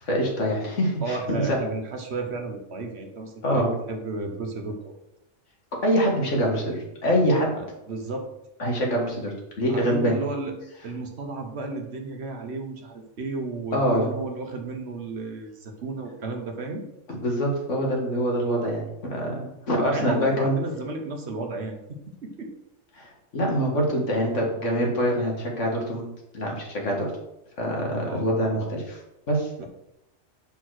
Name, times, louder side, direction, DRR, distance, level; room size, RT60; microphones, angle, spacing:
voice 1, 0.0-1.6 3.4-3.7 5.8-7.6 8.6-10.2 13.7-14.1 17.2-18.8 19.1-20.6 22.9-26.1 26.3-27.1 27.6-29.0 29.3-29.5, equal, 75° left, -1 dB, 2.0 m, -25 dB
voice 2, 1.0-4.9 7.6-8.3 9.7-10.5 10.8-16.8 19.9-22.5 28.0-28.7 29.6-29.7, right 3 dB, 60° right, 3 dB, 1.3 m, -33 dB
5.4 x 4.5 x 6.3 m, 0.86 s
omnidirectional pair, 1.3 m